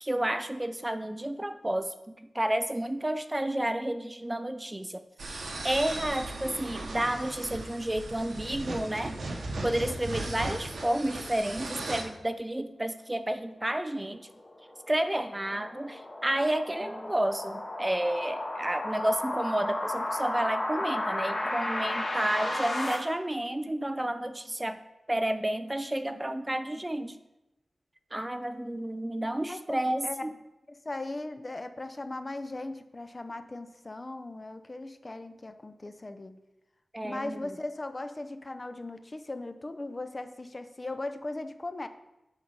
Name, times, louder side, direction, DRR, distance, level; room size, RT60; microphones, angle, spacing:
voice 1, 0.0-1.9 2.3-5.0 5.3-9.2 9.6-14.2 14.9-24.8 25.1-27.2 28.1-30.3 36.9-37.4, right 1 dB, 15° right, 10 dB, 0.4 m, -31 dB
sound 1, 5.2-12.0, right 2 dB, 75° right, 1.1 m, -37 dB
sound 2, 14.3-22.9, left 1 dB, 55° left, 2.1 m, -33 dB
voice 2, 29.5-30.2 30.7-36.4 37.0-41.9, left 2 dB, 30° left, 9 dB, 0.6 m, -38 dB
8.6 x 4.1 x 5.3 m, 0.95 s
wide cardioid pair, 75°, 0 cm